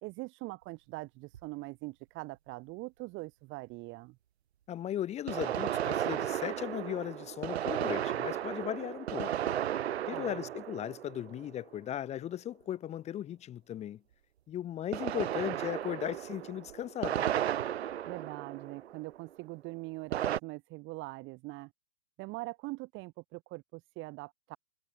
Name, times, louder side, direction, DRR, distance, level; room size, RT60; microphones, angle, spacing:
voice 1, 0.0-4.2 10.1-10.5 18.1-21.7 22.2-24.6, right 23 dB, 25° right, 2.5 m, -42 dB
sound 1, 1.3-1.4 5.3-11.8 14.9-19.2 20.1-20.4, right 11 dB, 40° right, 0.7 m, -34 dB
voice 2, 4.7-9.3 10.1-14.0 14.5-17.3, left 11 dB, 15° left, 1.5 m, -37 dB
figure-of-eight pair, 120°, 49 cm